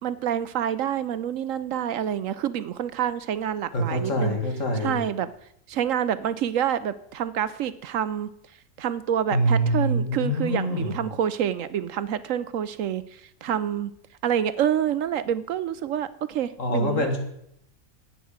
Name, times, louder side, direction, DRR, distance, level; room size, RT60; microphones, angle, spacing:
voice 1, 0.0-4.4 4.8-5.3 5.7-8.3 8.8-13.9 14.2-17.0, right 9 dB, 70° right, 14 dB, 0.9 m, -27 dB
voice 2, 3.7-5.0 9.3-11.0 16.6-17.2, right 1 dB, 60° left, 3 dB, 2.5 m, -24 dB
11.0 x 8.7 x 7.1 m, 0.74 s
omnidirectional pair, 1.5 m